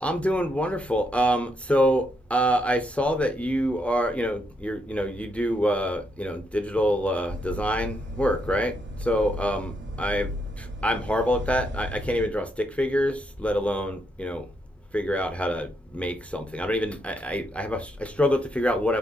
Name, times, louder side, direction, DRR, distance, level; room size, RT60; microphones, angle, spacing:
voice 1, 0.0-8.8 9.0-9.7 10.0-10.3 10.6-14.4 14.9-19.0, equal, 5° left, 0.5 m, -26 dB
sound 1, 7.3-12.3, left 1 dB, 60° right, 0.8 m, -35 dB
4.2 x 3.7 x 2.6 m
wide cardioid pair, 120°, 21 cm